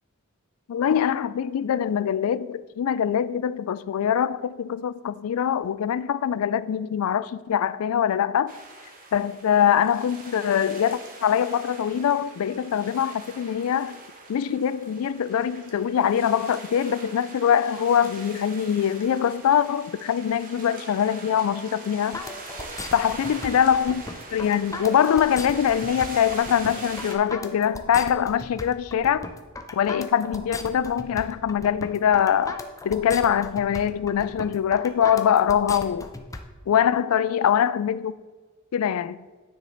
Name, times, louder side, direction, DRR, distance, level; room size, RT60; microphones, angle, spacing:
voice 1, 0.7-8.5 9.1-14.0 14.3-22.2 22.9-24.0 24.3-29.3 29.7-36.1 36.7-38.1 38.7-39.1, left 8 dB, 70° left, 0.3 m, -23 dB
sound 1, 8.5-27.1, right 3 dB, 40° right, 1.1 m, -42 dB
sound 2, 22.1-36.4, left 2 dB, 15° left, 0.5 m, -37 dB
9.6 x 4.9 x 4.0 m
head